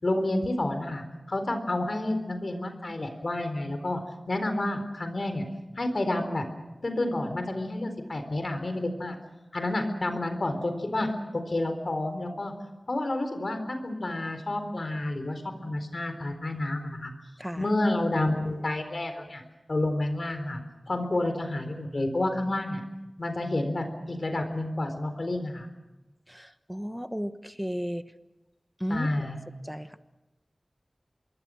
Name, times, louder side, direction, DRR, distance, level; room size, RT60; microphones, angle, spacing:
voice 1, 0.0-4.0 4.3-5.4 5.8-6.4 6.8-9.2 9.5-12.5 12.9-17.1 17.6-19.4 19.7-20.6 20.9-22.8 23.2-25.7 28.9-29.4, left 1 dB, 60° left, 7 dB, 4.0 m, -29 dB
voice 2, 26.3-28.1 28.8-29.1 29.6-30.0, equal, 5° right, 10 dB, 1.2 m, -34 dB
26.5 x 22.0 x 6.4 m, 1.0 s
wide cardioid pair, 65°, 0 cm